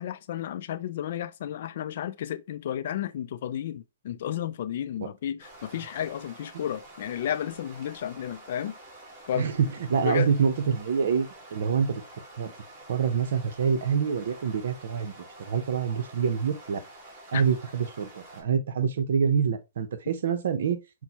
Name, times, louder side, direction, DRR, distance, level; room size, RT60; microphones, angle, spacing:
voice 1, 0.0-8.8 9.3-9.5 9.9-10.3 17.3-17.4, left 10 dB, 55° left, 0.4 m, -32 dB
sound 1, 5.4-18.4, right 1 dB, 30° right, 2.2 m, -48 dB
voice 2, 9.3-12.0 12.4-12.5 12.9-16.8 17.3-20.8, right 6 dB, 65° right, 0.8 m, -26 dB
6.0 x 2.2 x 2.9 m
hypercardioid pair, 135°, 0 cm